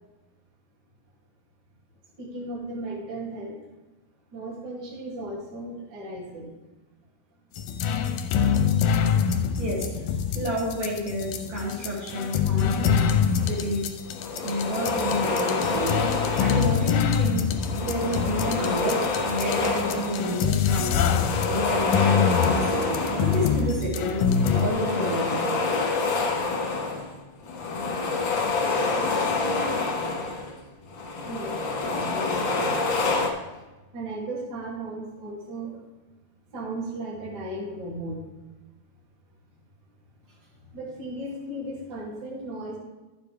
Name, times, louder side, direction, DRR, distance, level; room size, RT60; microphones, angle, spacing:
voice 1, 2.2-3.6 4.3-6.5 9.0-9.4 31.2-32.8 33.9-35.8 36.5-38.2 40.7-42.8, right 1 dB, 30° right, -6 dB, 2.6 m, -36 dB
sound 1, 7.5-24.7, left 7 dB, 80° left, 2.1 m, -25 dB
voice 2, 9.6-13.2 13.5-13.9 14.4-16.0 16.4-17.5 17.8-21.0 21.5-25.4, equal, 60° right, -5 dB, 3.8 m, -30 dB
sound 2, 13.4-13.6 14.1-17.1 17.5-20.5 20.8-23.8 24.2-30.6 30.9-33.3, left 3 dB, 55° left, 1.6 m, -27 dB
12.5 x 8.2 x 3.4 m, 1.1 s
omnidirectional pair, 4.3 m